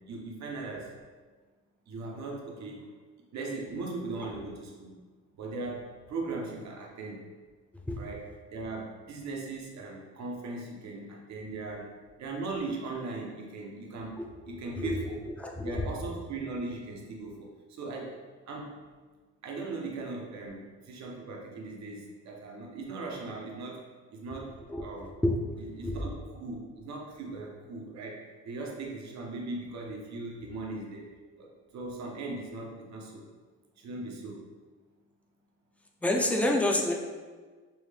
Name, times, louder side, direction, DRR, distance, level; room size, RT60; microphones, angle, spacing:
voice 1, 0.1-0.9 1.9-2.8 3.3-4.9 5.4-7.3 8.0-11.9 12.2-14.2 14.5-15.2 15.6-18.2 18.5-18.8 19.4-23.8 24.1-25.1 25.6-31.1 31.4-33.2 33.8-34.4, right 3 dB, 65° right, 0 dB, 0.8 m, -39 dB
voice 2, 14.5-15.0 15.4-15.8 24.7-24.8 25.2-26.0 36.0-36.9, left 1 dB, 5° left, 1 dB, 0.5 m, -28 dB
5.5 x 2.1 x 3.2 m, 1.4 s
cardioid pair, 90°, 30 cm